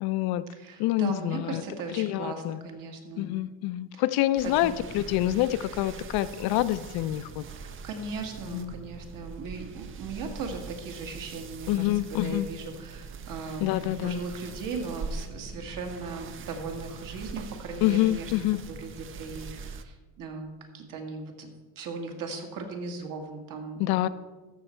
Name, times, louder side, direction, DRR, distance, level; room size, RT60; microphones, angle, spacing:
voice 1, 0.0-0.4 0.8-1.6 1.9-2.6 3.2-7.4 8.5-8.7 11.7-12.5 13.6-14.2 17.8-18.6 23.8-24.1, left 15 dB, 75° left, 14 dB, 0.6 m, -27 dB
voice 2, 0.6-3.2 3.9-4.0 4.6-4.7 7.6-13.7 14.0-18.3 18.7-20.5 20.7-23.8, right 4 dB, 55° right, 4 dB, 1.8 m, -38 dB
sound 1, 4.4-19.8, right 5 dB, 35° right, 0.6 m, -42 dB
14.0 x 6.4 x 4.5 m, 1.3 s
cardioid pair, 125°, 38 cm